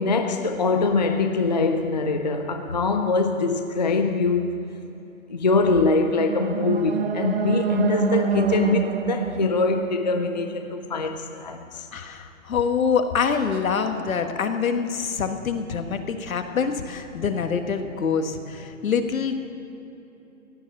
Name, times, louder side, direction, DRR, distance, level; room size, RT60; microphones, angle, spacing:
voice 1, 0.0-4.5 5.3-11.9, left 3 dB, 35° left, 0.4 m, -23 dB
sound 1, 5.8-10.9, right 6 dB, 45° right, 0.7 m, -27 dB
voice 2, 11.9-19.3, left 6 dB, 75° left, 1.6 m, -25 dB
16.0 x 9.5 x 7.8 m
hypercardioid pair, 170°, 42 cm